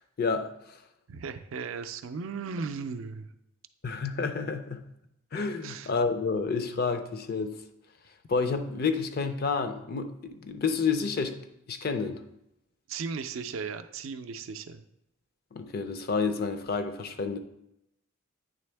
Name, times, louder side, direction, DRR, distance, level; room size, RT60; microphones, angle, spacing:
voice 1, 0.2-0.8 3.8-4.8 5.3-7.6 8.3-11.4 11.7-12.2 15.5-17.4, left 4 dB, 45° left, 9 dB, 0.4 m, -29 dB
voice 2, 1.1-3.3 5.6-5.9 12.9-14.8, right 5 dB, 70° right, 9 dB, 0.4 m, -36 dB
8.9 x 3.4 x 3.3 m, 0.82 s
head